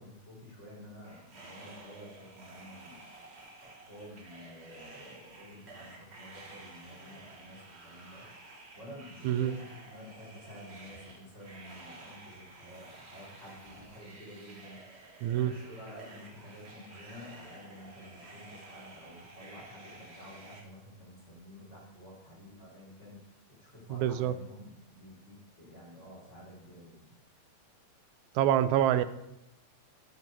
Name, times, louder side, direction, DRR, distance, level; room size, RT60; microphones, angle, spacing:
voice 1, 0.0-3.1 3.6-14.8 15.2-27.0, left 1 dB, 20° left, -4 dB, 4.7 m, -50 dB
sound 1, 1.0-20.6, right 2 dB, 40° right, 0.8 m, -52 dB
voice 2, 15.2-15.5 23.9-24.3 28.4-29.0, right 11 dB, 85° right, 13 dB, 2.0 m, -26 dB
12.0 x 8.3 x 4.7 m, 0.89 s
omnidirectional pair, 3.3 m